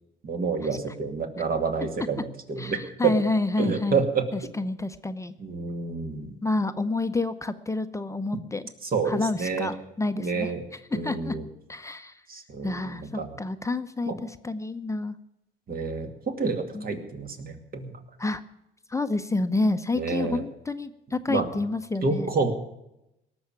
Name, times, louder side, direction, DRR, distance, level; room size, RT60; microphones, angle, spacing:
voice 1, 0.2-3.1 3.6-4.3 5.4-6.4 8.8-9.7 10.2-10.6 10.9-11.5 12.3-13.3 14.1-14.2 15.7-17.9 20.0-20.4 21.3-21.5 22.0-22.5, right 4 dB, 45° right, 5 dB, 2.4 m, -28 dB
voice 2, 2.6-4.0 4.3-5.3 6.4-8.6 9.1-10.5 11.0-11.3 11.7-12.2 12.6-15.2 16.7-16.9 18.2-18.4 18.9-22.3, left 2 dB, 15° left, 9 dB, 0.8 m, -29 dB
18.0 x 7.1 x 8.9 m, 0.86 s
cardioid pair, 90°, 21 cm